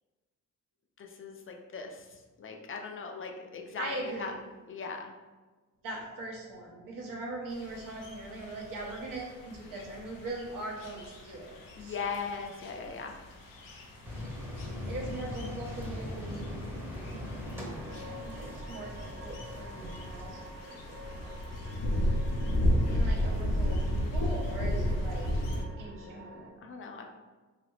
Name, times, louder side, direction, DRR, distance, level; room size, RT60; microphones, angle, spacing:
voice 1, 1.0-4.3 4.7-5.1 11.8-13.2 26.6-27.1, left 5 dB, 40° left, 3 dB, 0.4 m, -39 dB
voice 2, 3.8-4.4 5.8-12.1 14.2-14.3 14.9-16.7 17.4-21.4 22.9-25.3 25.8-26.7, right 2 dB, 85° right, -2 dB, 0.9 m, -41 dB
sound 1, 7.5-25.6, equal, 90° left, 0.5 m, -34 dB
sound 2, 14.0-20.3, left 1 dB, 5° right, 0.7 m, -40 dB
sound 3, 17.7-26.5, equal, 45° right, 0.8 m, -49 dB
3.3 x 2.9 x 2.4 m, 1.3 s
cardioid pair, 90°, 32 cm